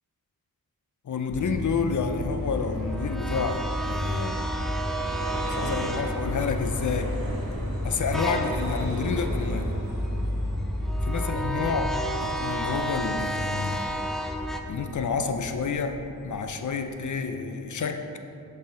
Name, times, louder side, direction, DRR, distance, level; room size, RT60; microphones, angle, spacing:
voice 1, 1.1-4.6 5.3-7.2 7.8-9.8 11.0-14.0 14.7-18.0, left 5 dB, 55° left, 7 dB, 0.5 m, -29 dB
sound 1, 1.3-14.6, equal, ahead, 0.4 m, -30 dB
Vehicle, 1.9-17.4, right 1 dB, 65° right, 1.5 m, -39 dB
6.2 x 4.2 x 3.7 m, 2.6 s
cardioid pair, 45°, 36 cm